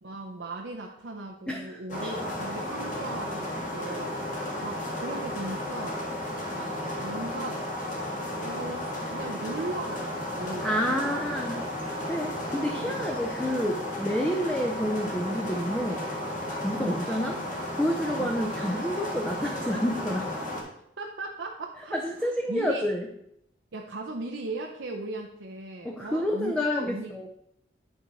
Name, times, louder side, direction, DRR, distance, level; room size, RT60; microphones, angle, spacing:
voice 1, 0.0-4.1 4.6-6.2 6.5-8.0 8.3-11.1 12.7-13.1 16.8-17.0 18.2-18.4 21.0-22.9 23.7-27.3, right 2 dB, 75° right, 0 dB, 0.7 m, -38 dB
sound 1, 1.9-20.6, left 1 dB, 45° left, 1.7 m, -33 dB
voice 2, 10.6-11.6 12.1-16.0 16.6-17.4 17.8-20.3 21.9-23.1 25.8-27.3, equal, 5° left, 1 dB, 0.6 m, -29 dB
10.0 x 4.5 x 4.1 m, 0.74 s
head